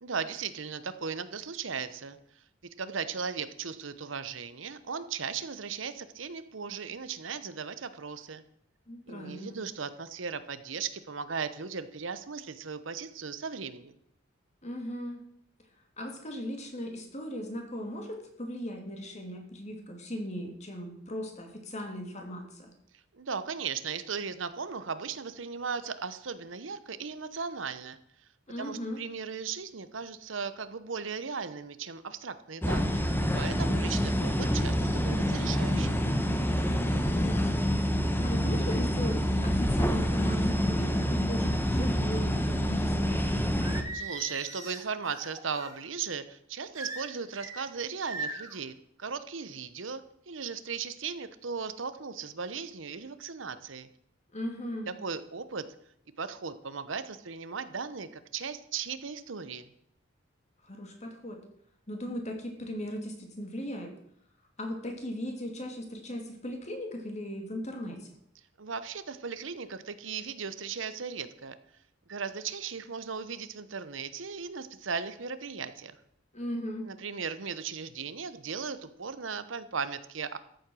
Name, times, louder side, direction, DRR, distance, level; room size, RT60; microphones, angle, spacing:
voice 1, 0.0-2.2 2.8-8.4 9.1-13.9 23.1-28.0 28.6-33.0 33.3-36.0 43.9-53.9 54.9-55.7 56.2-59.7 68.6-71.5 72.1-75.9 76.8-80.4, right 5 dB, 70° right, 12 dB, 0.9 m, -37 dB
voice 2, 8.9-9.6 14.6-15.2 16.0-22.7 28.5-29.0 36.7-43.3 54.3-54.9 60.6-61.4 61.9-63.9 64.6-68.1 76.3-76.9, equal, 35° left, 3 dB, 2.7 m, -38 dB
sound 1, 32.6-43.8, equal, 10° left, 1.1 m, -27 dB
Singing, 43.6-45.8 46.7-47.6 48.1-48.6, right 3 dB, 15° right, 2.4 m, -39 dB
14.0 x 7.9 x 6.2 m, 0.70 s
head